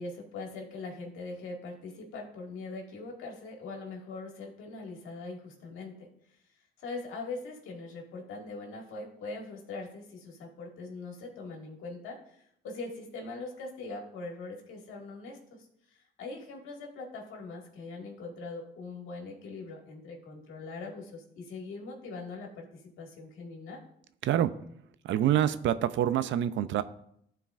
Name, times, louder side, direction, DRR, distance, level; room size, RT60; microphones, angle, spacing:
voice 1, 0.0-6.1 6.8-23.8, left 3 dB, 90° left, 0 dB, 1.9 m, -42 dB
voice 2, 25.0-26.8, right 11 dB, 70° right, 13 dB, 0.5 m, -26 dB
14.0 x 4.6 x 2.4 m, 0.72 s
cardioid pair, 90°, 20 cm